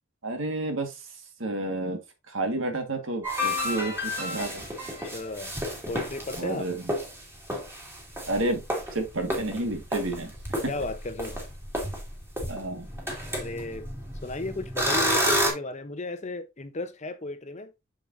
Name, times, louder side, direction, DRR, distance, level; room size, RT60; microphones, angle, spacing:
voice 1, 0.2-1.0 1.4-2.0 2.3-4.6 6.4-6.9 8.3-8.6 8.9-10.3 12.5-12.9, right 2 dB, 70° right, 1.8 m, -30 dB
sound 1, 3.2-6.4 6.8-7.2 7.5-15.5, equal, 10° right, 2.3 m, -30 dB
voice 2, 5.1-5.5 5.9-6.7 10.7-11.4 13.3-13.9 14.2-17.7, left 2 dB, 35° left, 0.8 m, -34 dB
7.0 x 6.8 x 2.7 m
head